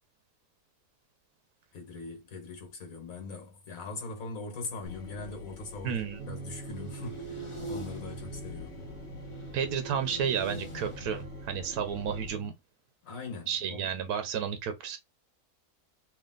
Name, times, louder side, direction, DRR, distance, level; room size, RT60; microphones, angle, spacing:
voice 1, 1.7-8.8 13.0-13.9, left 3 dB, 65° left, 1.8 m, -41 dB
sound 1, 4.9-12.3, left 4 dB, 50° left, 1.4 m, -47 dB
sound 2, 5.0-11.3, right 2 dB, 25° left, 0.8 m, -44 dB
voice 2, 5.8-6.3 9.5-12.5 13.5-15.0, right 7 dB, 85° right, 1.1 m, -32 dB
sound 3, 6.2-12.5, right 5 dB, 65° right, 0.7 m, -46 dB
3.3 x 2.8 x 3.7 m
omnidirectional pair, 1.6 m